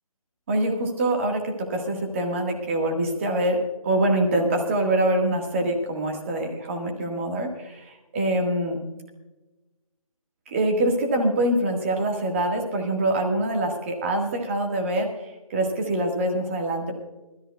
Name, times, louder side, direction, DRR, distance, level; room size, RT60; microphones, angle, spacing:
voice 1, 0.5-8.8 10.5-16.9, right 1 dB, 20° right, 3 dB, 1.7 m, -25 dB
21.0 x 13.5 x 2.4 m, 1.1 s
figure-of-eight pair, 160°, 18 cm